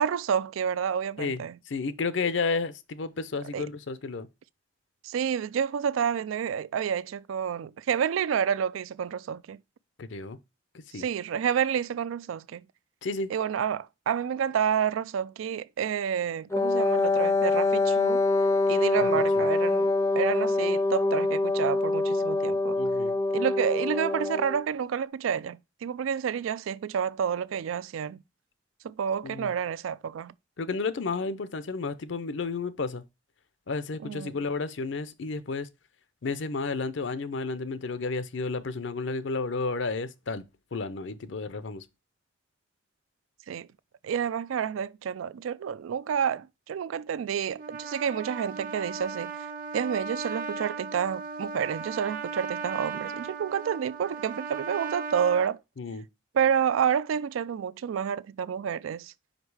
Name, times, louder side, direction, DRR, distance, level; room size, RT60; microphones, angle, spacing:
voice 1, 0.0-1.6 3.5-3.7 5.0-9.6 10.9-12.6 13.3-18.2 18.7-22.8 23.3-28.2 28.8-30.3 34.0-34.4 43.5-43.7 44.0-49.3 49.7-55.6 56.3-59.1, right 8 dB, 85° right, 0.3 m, -29 dB
voice 2, 1.2-4.3 10.0-10.4 10.9-11.0 13.0-13.3 19.1-19.4 22.8-23.2 29.2-29.5 30.6-33.0 33.7-35.7 36.2-40.5 40.7-41.8 55.8-56.0, left 4 dB, 70° left, 0.6 m, -32 dB
Wind instrument woodwind instrument, 16.5-24.6, left 2 dB, 15° left, 0.4 m, -25 dB
Trumpet, 47.5-55.5, right 5 dB, 45° right, 0.7 m, -37 dB
5.4 x 5.1 x 4.7 m
head